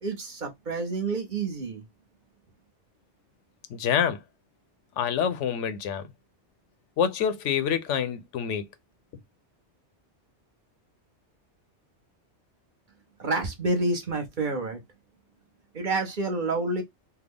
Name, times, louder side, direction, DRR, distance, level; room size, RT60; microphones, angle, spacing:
voice 1, 0.0-1.8 13.2-14.8 15.7-16.8, right 2 dB, 45° right, 0.9 m, -28 dB
voice 2, 3.7-4.2 5.0-6.1 7.0-8.6, left 8 dB, 85° left, 1.0 m, -26 dB
3.4 x 2.1 x 3.4 m
omnidirectional pair, 1.2 m